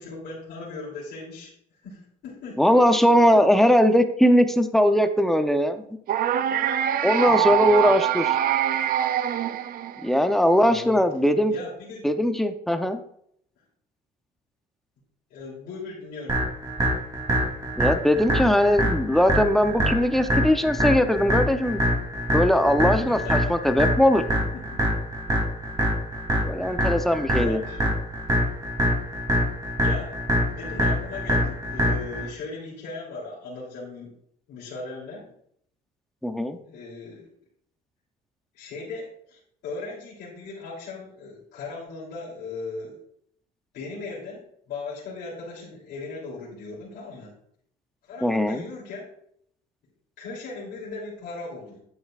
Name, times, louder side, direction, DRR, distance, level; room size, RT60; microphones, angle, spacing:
voice 1, 0.0-1.5 1.8-3.4 7.2-7.6 10.6-11.1 11.5-12.1 15.3-16.4 23.1-23.6 24.4-24.8 26.3-26.5 27.2-27.9 29.8-30.2 30.5-34.2 34.5-35.3 36.6-37.3 38.5-43.0 43.7-47.3 48.0-49.1 50.2-51.8, left 3 dB, 75° left, -6 dB, 3.2 m, -38 dB
voice 2, 2.6-5.8 7.0-8.4 10.0-11.5 12.0-13.0 17.8-21.8 22.3-24.2 26.5-27.6 36.2-36.6 48.2-48.6, equal, ahead, 8 dB, 0.7 m, -20 dB
sound 1, 6.1-10.3, right 11 dB, 60° right, 0.5 m, -24 dB
sound 2, 16.3-32.3, equal, 20° right, 3.0 m, -25 dB
9.8 x 8.0 x 2.5 m, 0.69 s
cardioid pair, 110°, 17 cm